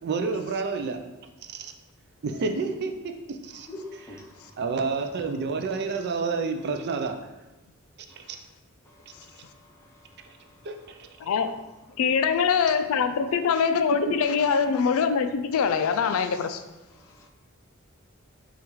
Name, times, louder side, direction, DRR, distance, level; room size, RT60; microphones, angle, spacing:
voice 1, 0.0-1.0 1.5-1.7 2.2-3.7 4.6-7.2 8.2-8.4 10.6-11.1, right 4 dB, 50° right, 6 dB, 0.4 m, -29 dB
voice 2, 3.7-4.6 8.8-9.1 9.6-10.1 17.0-17.3, left 1 dB, 15° left, 0 dB, 0.5 m, -45 dB
voice 3, 11.2-11.7 12.0-16.6, left 6 dB, 80° left, 9 dB, 0.4 m, -23 dB
6.2 x 2.4 x 3.0 m, 1.1 s
head